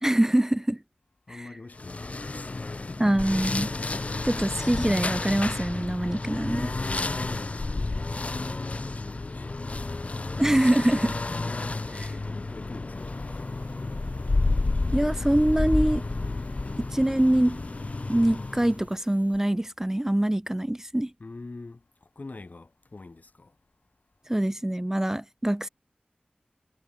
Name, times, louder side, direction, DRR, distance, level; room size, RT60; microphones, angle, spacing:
voice 1, 0.0-0.8 1.3-1.4 3.0-3.7 4.2-6.7 10.4-11.2 11.9-12.1 14.9-16.0 16.8-17.6 18.1-21.1 24.3-25.7, right 1 dB, 15° right, 0.4 m, -24 dB
voice 2, 1.3-3.2 6.9-9.6 12.1-13.1 21.2-21.8 22.1-23.5, left 3 dB, 65° left, 3.4 m, -44 dB
sound 1, 1.8-18.9, left 3 dB, 45° left, 0.4 m, -30 dB
sound 2, 12.9-19.4, right 3 dB, 60° right, 7.7 m, -57 dB
wide cardioid pair, 60°, 3 cm